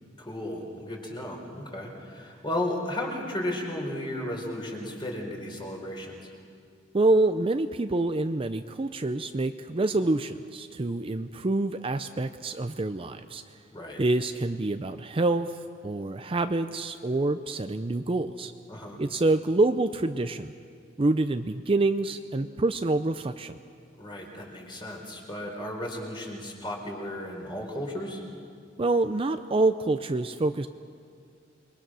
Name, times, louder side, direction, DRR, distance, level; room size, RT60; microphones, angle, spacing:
voice 1, 0.2-6.3 13.7-14.0 18.7-19.0 24.0-28.2, left 1 dB, 25° left, 0 dB, 4.2 m, -34 dB
voice 2, 6.9-13.6 14.0-18.5 19.0-20.5 21.0-23.6 28.8-30.7, right 2 dB, 30° right, 9 dB, 0.5 m, -26 dB
27.5 x 22.0 x 6.3 m, 2.3 s
head